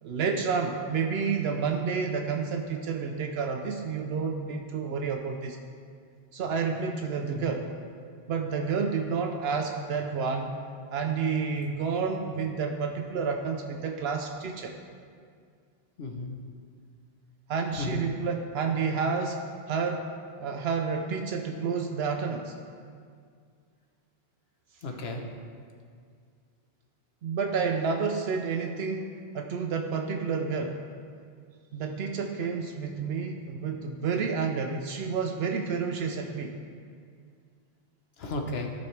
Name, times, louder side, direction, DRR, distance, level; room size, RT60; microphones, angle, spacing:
voice 1, 0.0-5.6 6.3-7.7 8.3-10.6 10.9-14.7 17.5-20.1 20.4-22.5 27.2-30.8 31.7-36.6, right 5 dB, 80° right, 4 dB, 0.8 m, -30 dB
voice 2, 7.3-7.6 16.0-16.4 17.7-18.0 24.8-25.3 38.2-38.7, left 2 dB, 75° left, 3 dB, 1.1 m, -34 dB
13.5 x 5.3 x 3.2 m, 2.2 s
omnidirectional pair, 1.0 m